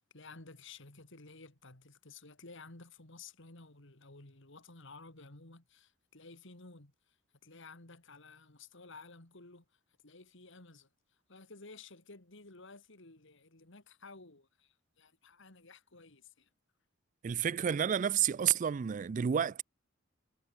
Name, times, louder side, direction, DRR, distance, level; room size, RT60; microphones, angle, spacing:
voice 1, 0.0-7.1 7.4-9.6 10.0-10.9 11.3-16.5, left 3 dB, 65° left, 3.0 m, -54 dB
voice 2, 17.2-19.6, right 8 dB, 40° right, 0.4 m, -30 dB
head